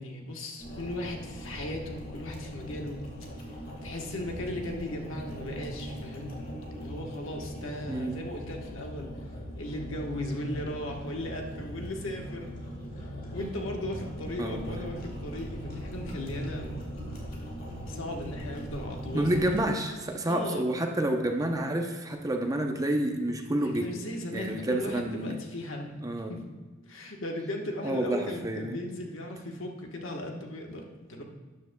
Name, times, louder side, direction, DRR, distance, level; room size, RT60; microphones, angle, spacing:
voice 1, 0.0-3.0 3.8-6.3 6.8-9.1 9.6-12.5 13.3-16.8 17.8-19.5 20.2-20.8 23.8-26.4 26.9-31.2, left 1 dB, 70° left, 1 dB, 1.3 m, -37 dB
sound 1, 0.6-19.6, equal, 45° left, 2.4 m, -40 dB
voice 2, 14.4-14.8 19.1-23.9 24.3-25.4 26.0-26.3 27.8-28.8, right 1 dB, 15° right, 3 dB, 0.7 m, -29 dB
12.5 x 9.5 x 2.3 m, 1.3 s
head